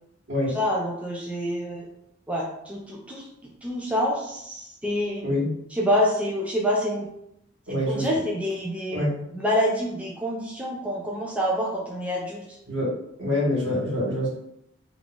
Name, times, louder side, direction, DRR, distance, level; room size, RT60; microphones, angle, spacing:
voice 1, 0.5-1.9 2.3-5.3 5.7-7.1 7.7-9.0 9.3-12.6, equal, 5° right, -3 dB, 0.4 m, -27 dB
voice 2, 7.7-8.1 8.9-9.1 12.7-12.9 13.2-14.4, left 1 dB, 65° right, -4 dB, 1.0 m, -25 dB
2.4 x 2.0 x 3.7 m, 0.77 s
head